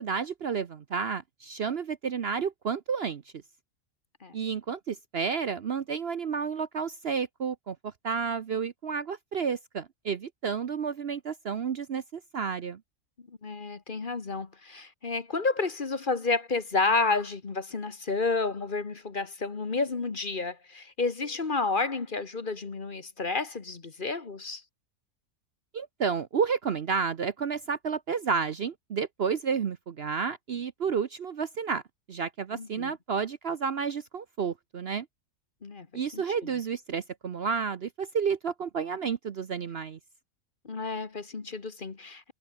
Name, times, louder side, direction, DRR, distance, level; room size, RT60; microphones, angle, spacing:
voice 1, 0.0-3.2 4.3-12.8 25.7-31.8 32.1-35.1 35.9-40.0, right 6 dB, 50° right, 0.9 m, -31 dB
voice 2, 13.4-24.6 32.5-33.0 35.6-35.9 36.1-36.2 40.6-42.3, left 3 dB, 35° left, 1.4 m, -30 dB
omnidirectional pair, 1.5 m